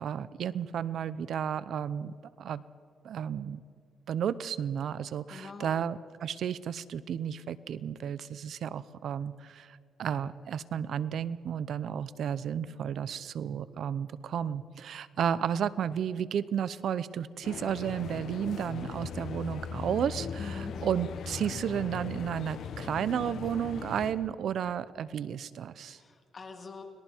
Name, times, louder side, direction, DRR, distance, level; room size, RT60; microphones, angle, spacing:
voice 1, 0.0-2.6 3.0-3.6 4.1-20.3 20.8-26.0, right 8 dB, 65° right, 16 dB, 0.7 m, -33 dB
voice 2, 5.3-5.8 20.4-20.8 25.8-26.8, left 4 dB, 40° left, 3 dB, 2.9 m, -44 dB
sound 1, 17.4-24.1, left 6 dB, 75° left, 1.4 m, -39 dB
30.0 x 21.0 x 4.5 m, 2.1 s
cardioid pair, 115°, 0 cm